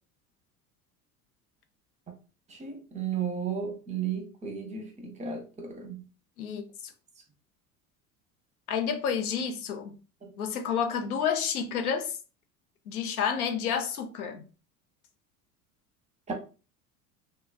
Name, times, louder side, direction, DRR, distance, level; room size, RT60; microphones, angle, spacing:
voice 1, 2.5-6.0 10.2-10.3 16.3-16.4, right 7 dB, 15° right, 0.7 m, -34 dB
voice 2, 8.7-9.9 10.4-12.1 12.9-14.4, left 7 dB, 75° left, 0.6 m, -29 dB
3.0 x 2.0 x 2.3 m
figure-of-eight pair, 70°, 45 cm